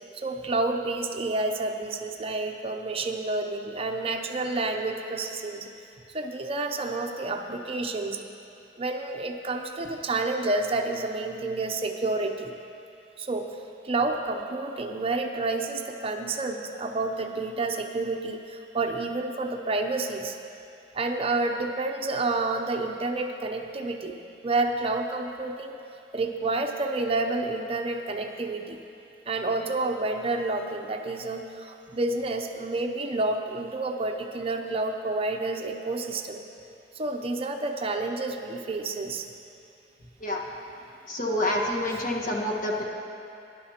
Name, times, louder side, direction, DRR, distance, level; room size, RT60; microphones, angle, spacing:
voice 1, 0.1-5.7 6.1-8.2 8.8-12.5 13.2-20.4 20.9-24.1 24.4-25.8 26.1-28.8 29.3-36.4 36.9-39.3 41.9-42.0, right 2 dB, 35° right, 4 dB, 0.6 m, -29 dB
voice 2, 41.1-42.8, left 1 dB, 50° left, -1 dB, 1.4 m, -27 dB
18.5 x 10.5 x 2.9 m, 2.6 s
head